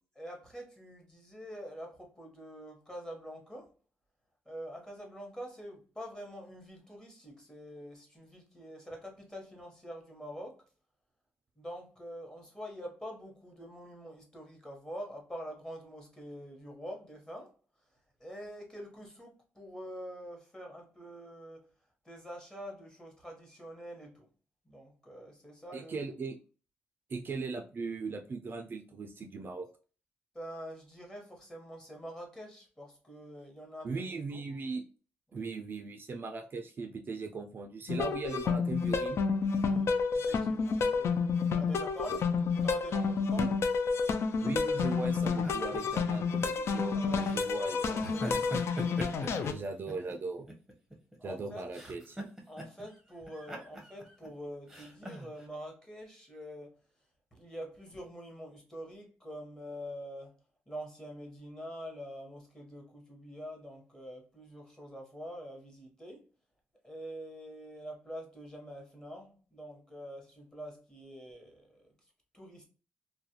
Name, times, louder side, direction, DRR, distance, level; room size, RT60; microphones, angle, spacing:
voice 1, 0.2-3.7 4.4-10.6 11.6-17.5 18.2-21.6 22.0-24.3 24.6-26.0 30.3-34.4 35.3-35.5 39.5-41.1 41.5-42.4 42.6-43.5 46.9-47.4 47.8-48.6 51.2-51.7 52.5-56.7 57.3-60.3 60.7-66.2 66.8-71.8 72.3-72.7, equal, 15° left, 1.0 m, -45 dB
voice 2, 25.7-26.4 27.1-29.7 33.8-34.8 35.3-39.2 42.1-42.2 43.3-43.5 44.4-48.1 49.5-50.5 51.2-52.2, right 3 dB, 40° right, 0.3 m, -38 dB
sound 1, 37.9-49.5, left 5 dB, 60° left, 0.3 m, -30 dB
sound 2, 44.3-46.4 47.2-47.5 48.0-50.1 50.5-51.4 51.7-53.0 53.3-54.3 54.7-55.5, right 1 dB, 5° right, 0.8 m, -42 dB
2.4 x 2.1 x 2.8 m
cardioid pair, 85°, 5 cm